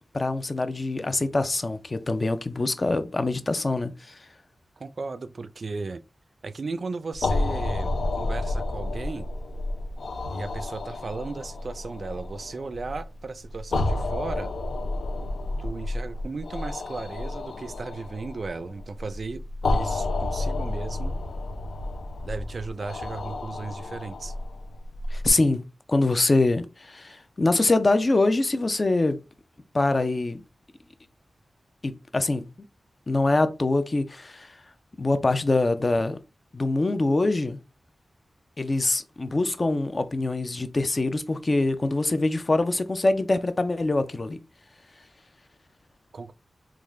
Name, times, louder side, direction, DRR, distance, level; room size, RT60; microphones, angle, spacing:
voice 1, 0.1-4.2 25.1-29.2 29.7-30.4 31.8-32.5 33.1-34.6 35.0-36.2 36.5-37.6 38.6-44.4, left 2 dB, 35° left, 0.4 m, -24 dB
voice 2, 4.8-6.0 6.4-9.3 10.3-14.5 15.6-19.5 19.7-21.2 22.2-24.3 46.1-46.3, right 4 dB, 60° right, 0.3 m, -35 dB
sound 1, 7.1-25.3, left 2 dB, 85° left, 0.5 m, -31 dB
3.6 x 2.4 x 3.2 m
wide cardioid pair, 80°, 0 cm